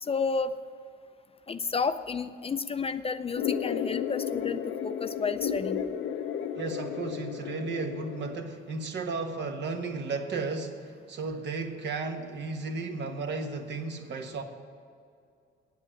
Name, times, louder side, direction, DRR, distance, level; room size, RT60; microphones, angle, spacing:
voice 1, 0.0-0.5 1.5-5.8, left 5 dB, 30° left, 11 dB, 0.4 m, -31 dB
sound 1, 3.4-8.4, left 8 dB, 70° left, 0.6 m, -33 dB
voice 2, 6.6-14.4, right 4 dB, 60° right, 5 dB, 1.3 m, -34 dB
8.7 x 7.8 x 8.9 m, 2.3 s
cardioid pair, 90°, 20 cm